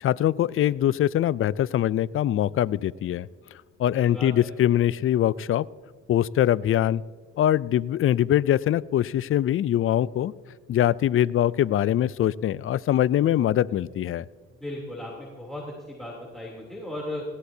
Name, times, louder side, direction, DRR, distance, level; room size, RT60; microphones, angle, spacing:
voice 1, 0.0-3.3 3.8-5.7 6.1-7.0 7.4-10.3 10.7-14.3, left 11 dB, 45° left, 20 dB, 0.4 m, -23 dB
voice 2, 3.9-4.5 14.6-17.2, left 1 dB, ahead, -4 dB, 3.1 m, -36 dB
19.5 x 16.5 x 2.8 m, 1.5 s
cardioid pair, 90°, 30 cm